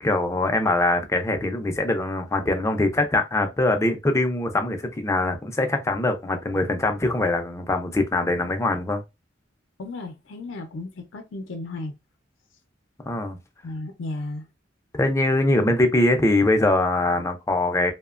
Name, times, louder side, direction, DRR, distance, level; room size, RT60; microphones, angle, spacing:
voice 1, 0.0-9.0 13.0-13.4 14.9-17.9, left 2 dB, 15° left, 0.4 m, -22 dB
voice 2, 9.8-11.9 13.6-14.5, left 2 dB, 85° left, 0.5 m, -34 dB
2.8 x 2.1 x 2.3 m
head